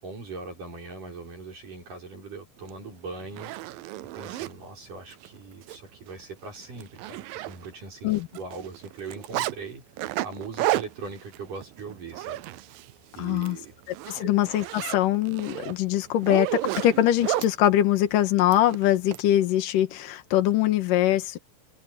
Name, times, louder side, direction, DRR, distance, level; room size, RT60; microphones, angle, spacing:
voice 1, 0.0-3.7 4.1-12.4 13.2-13.7 14.2-14.3 14.8-14.9, right 4 dB, 60° right, 7.8 m, -40 dB
Zipper (clothing), 2.7-2.8 3.2-4.5 5.1-5.3 5.6-5.8 6.1-6.2 6.6-7.9 8.1-9.5 10.0-12.9 13.3-13.5 13.9-17.5 18.5-19.2, right 16 dB, 80° right, 2.4 m, -32 dB
voice 2, 13.2-13.6 14.1-21.4, left 12 dB, 65° left, 3.0 m, -23 dB
omnidirectional pair, 4.3 m